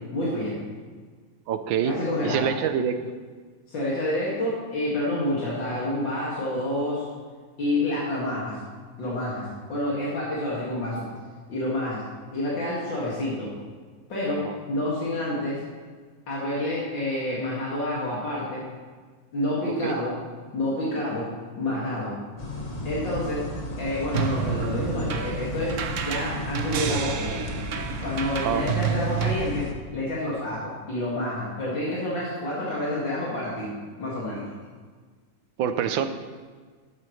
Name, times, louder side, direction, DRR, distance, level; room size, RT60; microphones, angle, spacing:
voice 1, 0.1-0.5 1.8-2.5 3.7-7.1 7.6-8.6 9.0-11.1 11.5-12.0 12.3-13.5 14.1-15.6 16.3-18.6 19.3-20.2 20.5-21.3 21.6-22.1 22.8-23.5 23.8-27.4 28.0-29.7 29.9-34.4, left 1 dB, 75° left, -7 dB, 3.0 m, -28 dB
voice 2, 1.5-2.0 2.2-3.0 14.4-14.6 19.8-20.0 28.4-28.7 35.6-36.1, right 8 dB, 90° right, 10 dB, 1.5 m, -26 dB
sound 1, 22.4-29.7, equal, 25° left, 0.9 m, -34 dB
sound 2, 24.1-29.3, right 7 dB, 65° right, 0.8 m, -30 dB
13.0 x 11.5 x 3.2 m, 1.5 s
omnidirectional pair, 2.1 m